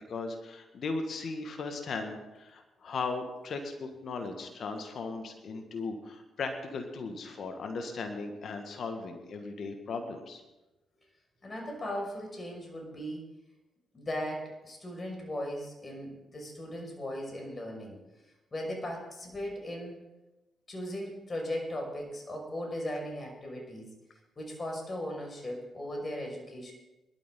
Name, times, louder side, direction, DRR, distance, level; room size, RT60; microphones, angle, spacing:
voice 1, 0.1-10.4, left 4 dB, 60° left, 5 dB, 1.8 m, -37 dB
voice 2, 11.4-13.3 13.9-18.0 18.5-20.0 20.7-23.9 24.4-26.7, left 1 dB, 35° left, 1 dB, 5.7 m, -37 dB
20.5 x 12.5 x 3.9 m, 1.0 s
hypercardioid pair, 40°, 0 cm